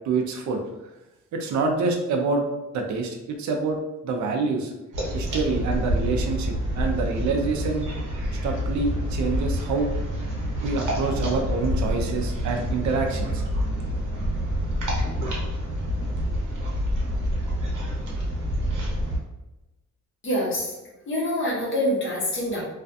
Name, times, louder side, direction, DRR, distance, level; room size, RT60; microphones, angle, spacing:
voice 1, 0.0-0.6 1.3-2.4 2.7-4.7 5.1-7.9 8.4-9.9 10.6-13.5, right 4 dB, 70° right, 2 dB, 0.5 m, -26 dB
sound 1, 4.9-19.2, equal, 90° right, 0.8 m, -27 dB
voice 2, 20.2-20.7 21.1-22.6, left 1 dB, 40° left, -5 dB, 0.9 m, -25 dB
2.4 x 2.2 x 2.6 m, 1.0 s
wide cardioid pair, 155°, 30 cm